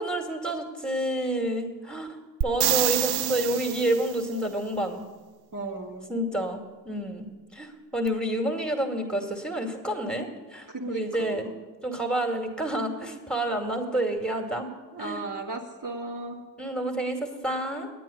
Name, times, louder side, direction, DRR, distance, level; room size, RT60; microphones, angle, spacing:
voice 1, 0.0-2.2 2.4-5.1 6.1-7.3 7.5-11.5 11.8-14.7 15.0-15.2 16.6-17.9, right 1 dB, ahead, 2 dB, 2.3 m, -29 dB
sound 1, 2.4-4.2 8.1-8.2, right 12 dB, 65° right, 0.5 m, -27 dB
voice 2, 5.5-6.1 10.7-11.5 14.9-16.4, right 2 dB, 50° right, -1 dB, 1.8 m, -36 dB
10.5 x 9.2 x 7.1 m, 1.3 s
supercardioid pair, 40°, 41 cm